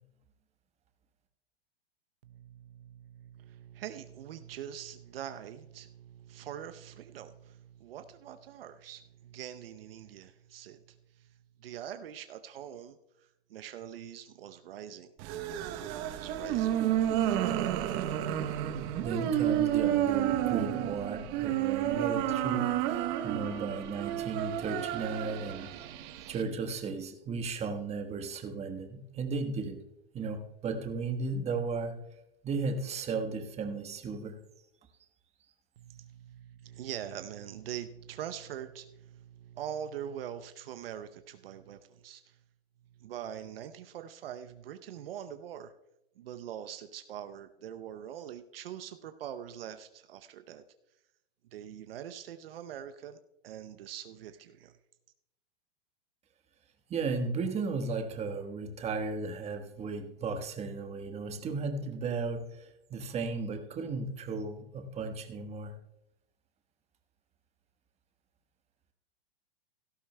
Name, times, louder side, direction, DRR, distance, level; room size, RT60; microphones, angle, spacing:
voice 1, 2.2-11.3 11.6-13.0 13.5-15.1 15.5-16.8 17.0-17.8 35.8-42.4 43.0-45.7 46.2-50.6 51.5-54.7, right 10 dB, 70° right, 9 dB, 0.8 m, -44 dB
sound 1, 15.2-26.4, right 12 dB, 40° right, 0.9 m, -31 dB
voice 2, 19.0-25.7 26.3-29.8 30.1-32.0 32.4-34.4 56.9-65.7, right 4 dB, 20° right, 6 dB, 1.2 m, -35 dB
17.0 x 13.0 x 2.2 m, 0.87 s
hypercardioid pair, 120°, 30 cm